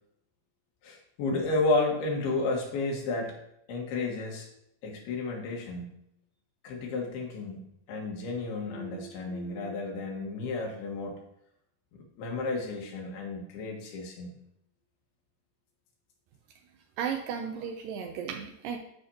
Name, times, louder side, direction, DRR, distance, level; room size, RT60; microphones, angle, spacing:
voice 1, 0.8-3.4 3.7-4.5 4.8-6.0 6.6-7.6 7.9-11.2 11.9-14.3, left 3 dB, 75° left, -1 dB, 3.4 m, -32 dB
voice 2, 17.0-18.8, right 7 dB, 90° right, 4 dB, 2.0 m, -34 dB
12.0 x 5.0 x 2.8 m, 0.76 s
omnidirectional pair, 4.6 m